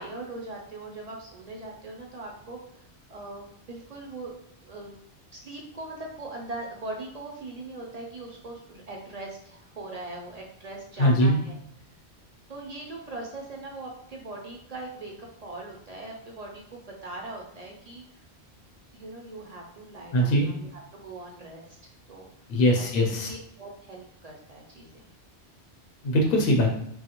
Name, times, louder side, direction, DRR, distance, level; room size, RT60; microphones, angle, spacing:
voice 1, 0.0-2.6 3.1-4.3 4.6-5.0 5.3-11.6 12.5-18.0 18.9-21.8 22.1-22.3 22.8-22.9 23.2-25.1, right 2 dB, 55° right, -1 dB, 0.5 m, -40 dB
voice 2, 11.0-11.4 20.1-20.5 22.5-23.3 26.0-26.8, equal, 60° left, 0 dB, 0.7 m, -21 dB
3.2 x 2.3 x 2.8 m, 0.71 s
omnidirectional pair, 1.1 m